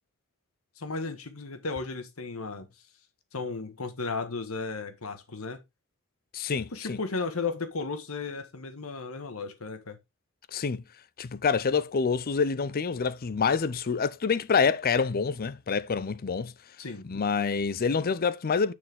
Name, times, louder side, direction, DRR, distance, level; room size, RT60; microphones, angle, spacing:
voice 1, 0.8-2.7 3.3-5.6 6.7-10.0 16.8-17.1, left 4 dB, 90° left, 1.4 m, -34 dB
voice 2, 6.3-7.0 10.5-10.8 11.2-16.5 17.0-18.7, left 5 dB, 45° left, 0.5 m, -27 dB
6.6 x 6.6 x 3.5 m
head